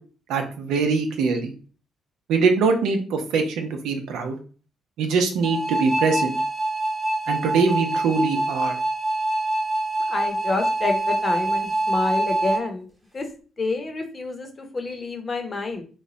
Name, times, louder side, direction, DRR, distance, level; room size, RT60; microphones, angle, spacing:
voice 1, 0.3-1.5 2.3-4.4 5.0-6.4 7.3-8.8, right 4 dB, 90° right, 4 dB, 0.6 m, -22 dB
sound 1, 5.4-12.6, right 1 dB, 20° right, 1.0 m, -25 dB
voice 2, 10.1-12.9 13.1-13.3 13.6-15.8, left 3 dB, 35° left, 5 dB, 0.8 m, -28 dB
3.1 x 2.2 x 3.8 m, 0.39 s
cardioid pair, 90°, 0 cm